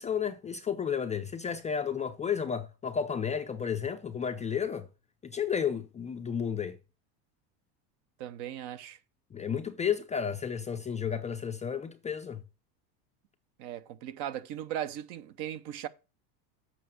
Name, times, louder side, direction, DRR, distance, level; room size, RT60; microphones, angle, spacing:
voice 1, 0.0-4.9 5.2-6.8 9.3-12.4, left 7 dB, 15° left, 0.4 m, -32 dB
voice 2, 8.2-9.0 13.6-15.9, right 11 dB, 55° right, 0.9 m, -38 dB
7.7 x 5.1 x 6.2 m
supercardioid pair, 105°, 48 cm